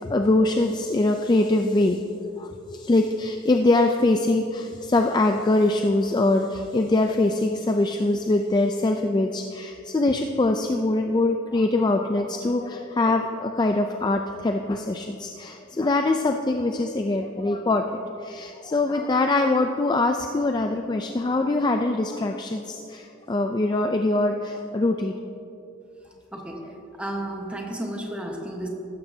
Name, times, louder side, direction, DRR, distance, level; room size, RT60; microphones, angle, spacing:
voice 1, 0.0-2.0 2.4-17.8 18.2-25.2, left 2 dB, 20° left, 4 dB, 0.3 m, -23 dB
voice 2, 26.3-28.7, right 1 dB, 5° right, 0 dB, 1.1 m, -33 dB
15.0 x 13.0 x 2.7 m, 2.9 s
head